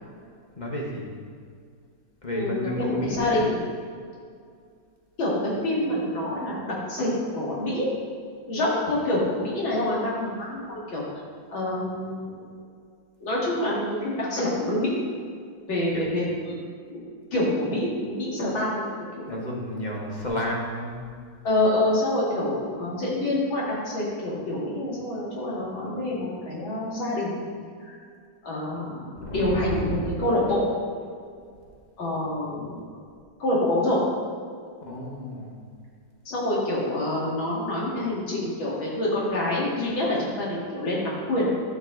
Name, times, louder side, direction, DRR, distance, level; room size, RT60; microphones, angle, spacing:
voice 1, 0.5-1.1 2.2-3.5 15.9-16.1 19.2-21.0 29.2-30.2 34.8-35.5, left 1 dB, 25° left, -2 dB, 1.5 m, -31 dB
voice 2, 2.3-3.6 5.2-7.9 8.5-11.0 11.5-12.3 13.2-15.0 15.7-16.5 16.9-17.0 17.3-18.9 19.2-19.3 21.4-27.4 27.8-27.9 28.4-30.6 32.0-32.8 33.4-34.0 36.2-41.5, left 1 dB, 80° left, -6 dB, 3.2 m, -26 dB
13.5 x 6.0 x 4.0 m, 2.1 s
omnidirectional pair, 2.1 m